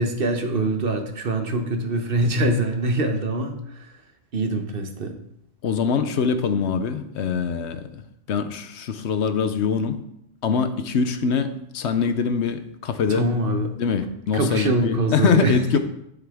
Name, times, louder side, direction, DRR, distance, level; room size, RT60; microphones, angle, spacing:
voice 1, 0.0-4.0 4.3-5.2 13.1-13.7 14.3-15.8, right 2 dB, 50° right, 5 dB, 1.0 m, -24 dB
voice 2, 5.6-8.0 8.3-10.0 10.4-13.2 13.8-15.8, left 6 dB, 70° left, 9 dB, 0.9 m, -23 dB
11.0 x 5.8 x 3.5 m, 0.78 s
omnidirectional pair, 1.3 m